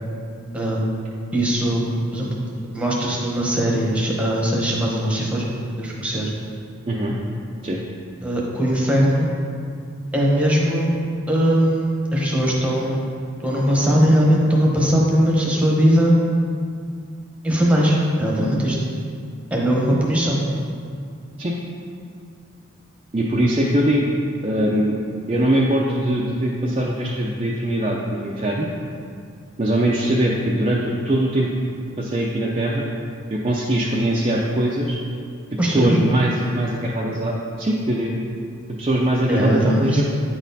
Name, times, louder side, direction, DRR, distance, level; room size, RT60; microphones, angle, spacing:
voice 1, 1.3-1.8 2.1-2.3 2.7-5.4 5.8-6.3 8.2-9.3 10.1-10.9 11.3-13.1 13.4-16.1 17.4-18.8 19.5-20.4 35.6-36.0 39.3-40.0, equal, 5° right, -3 dB, 0.9 m, -19 dB
voice 2, 6.9-7.2 7.6-7.8 21.4-21.5 23.1-24.1 24.4-24.9 25.3-28.7 29.6-31.5 32.0-32.9 33.3-35.0 35.5-38.1 38.8-40.0, right 1 dB, 25° right, -4 dB, 0.4 m, -21 dB
8.9 x 4.2 x 4.0 m, 2.3 s
head